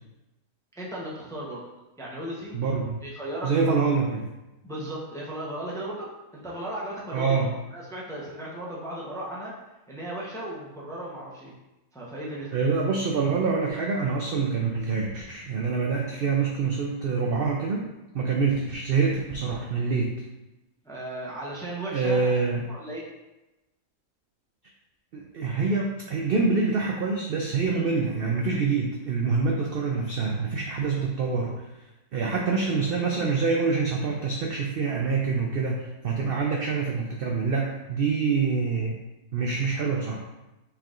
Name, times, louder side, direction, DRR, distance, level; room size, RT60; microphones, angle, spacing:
voice 1, 0.8-1.6 2.0-2.6 3.0-3.7 4.6-9.6 9.9-11.5 11.9-12.5 20.8-22.3 22.7-23.0 29.6-29.7 36.2-36.3, right 1 dB, 5° left, -5 dB, 0.6 m, -36 dB
voice 2, 2.5-3.0 3.4-4.3 7.1-7.5 12.5-17.8 18.1-20.1 21.9-22.6 25.1-31.5 32.1-39.0 39.3-40.2, right 4 dB, 65° right, 0 dB, 0.6 m, -26 dB
5.8 x 3.5 x 2.5 m, 1.0 s
omnidirectional pair, 1.5 m